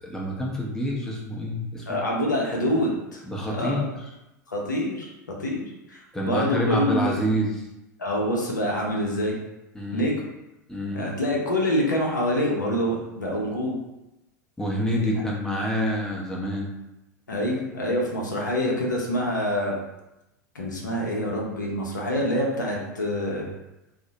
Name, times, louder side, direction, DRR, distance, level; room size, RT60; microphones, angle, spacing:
voice 1, 0.0-2.0 3.2-3.9 6.1-7.7 9.7-10.1 10.7-11.1 14.6-16.7, equal, 5° left, -3 dB, 0.6 m, -27 dB
voice 2, 1.9-3.2 3.5-3.8 4.5-5.1 5.4-7.2 8.0-9.3 9.9-10.2 10.9-13.8 17.3-19.7 20.5-23.5, equal, 80° left, -2 dB, 0.6 m, -26 dB
2.7 x 2.1 x 2.6 m, 0.93 s
figure-of-eight pair, 85°, 10 cm